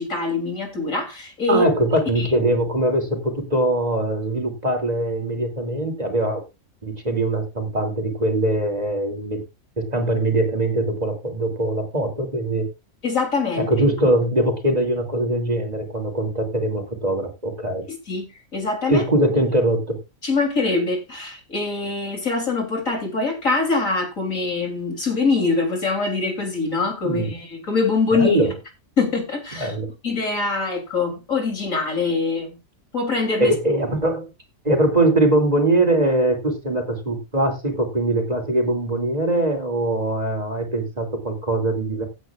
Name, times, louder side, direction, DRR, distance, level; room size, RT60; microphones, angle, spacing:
voice 1, 0.0-1.7 2.2-2.3 13.0-13.7 17.9-18.3 18.5-19.0 20.2-28.4 29.0-29.8 30.0-32.6 32.9-33.5, left 3 dB, 70° left, 3.8 m, -24 dB
voice 2, 1.5-6.4 6.8-9.4 9.8-12.6 13.5-17.8 18.9-20.0 27.0-27.3 28.1-28.5 29.5-29.9 33.4-34.2 34.6-42.0, right 1 dB, 30° right, 3.1 m, -22 dB
16.5 x 9.0 x 2.5 m
omnidirectional pair, 1.4 m